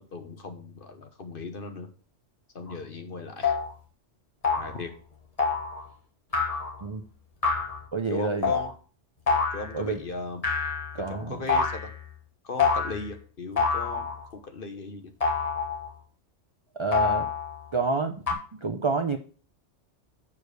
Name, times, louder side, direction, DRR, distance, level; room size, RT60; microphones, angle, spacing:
voice 1, 0.0-1.9 2.5-3.6 4.5-4.9 8.1-8.7 9.5-10.4 11.1-11.9 12.4-15.1, left 3 dB, 50° left, 6 dB, 1.3 m, -37 dB
sound 1, 2.7-2.8 3.4-3.7 4.4-4.8 5.4-5.8 6.3-6.8 7.4-7.8 8.4-8.7 9.3-9.8 10.4-11.1 11.5-12.0 12.6-13.1 13.6-14.3 15.2-15.9 16.9-17.6 18.3-18.4, left 5 dB, 30° left, 1.4 m, -26 dB
voice 2, 7.9-8.5 9.7-10.0 10.9-11.4 16.8-17.3 17.7-19.2, right 4 dB, 40° right, 7 dB, 0.4 m, -28 dB
7.1 x 4.8 x 6.5 m, 0.40 s
omnidirectional pair, 1.2 m